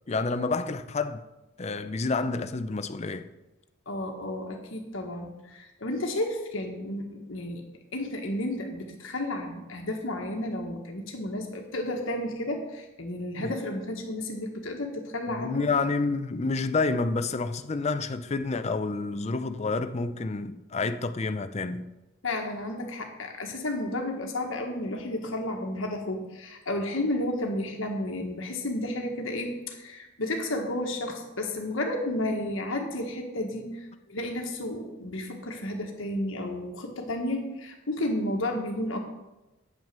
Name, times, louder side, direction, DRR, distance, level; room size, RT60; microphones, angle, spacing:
voice 1, 0.1-1.2 1.6-3.3 13.4-13.5 15.3-21.9, left 3 dB, 30° left, 0.5 m, -29 dB
voice 2, 3.9-7.6 7.9-15.7 22.2-39.0, left 1 dB, 70° left, 1.4 m, -32 dB
8.9 x 6.3 x 6.7 m
head